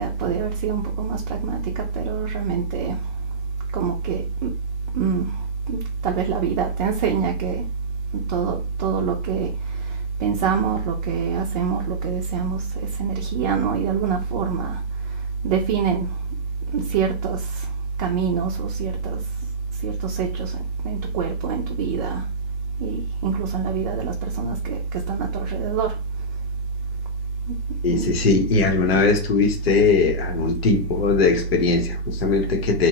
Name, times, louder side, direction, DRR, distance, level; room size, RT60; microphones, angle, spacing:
voice 1, 0.0-3.2 3.7-4.5 4.9-7.7 8.1-16.4 16.7-19.5 19.7-22.3 22.8-26.0 27.4-27.6 27.9-28.2, right 5 dB, 40° right, 0.5 m, -25 dB
voice 2, 27.8-32.9, left 4 dB, 70° left, 0.8 m, -20 dB
2.9 x 2.1 x 2.8 m
hypercardioid pair, 145°, 31 cm